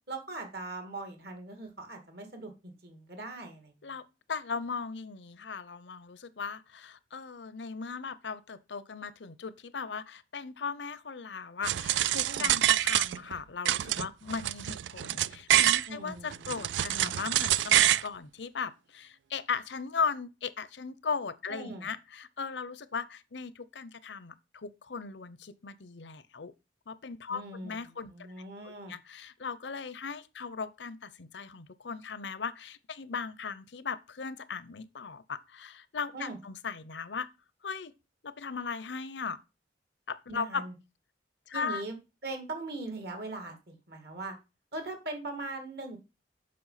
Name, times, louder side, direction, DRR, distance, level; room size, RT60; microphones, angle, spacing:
voice 1, 0.1-3.7 12.2-12.5 15.9-17.1 21.5-21.9 27.3-28.9 36.1-36.4 40.3-40.7 41.5-44.4 44.7-46.0, right 2 dB, 60° right, 2.4 m, -41 dB
voice 2, 4.3-26.5 26.9-28.1 28.6-37.3 37.6-37.9 38.2-39.4 40.1-40.6 41.5-41.8, left 5 dB, 80° left, 0.7 m, -38 dB
sound 1, 11.6-13.4 13.6-15.9 16.3-18.1, right 12 dB, 90° right, 0.3 m, -26 dB
7.7 x 5.7 x 5.7 m
head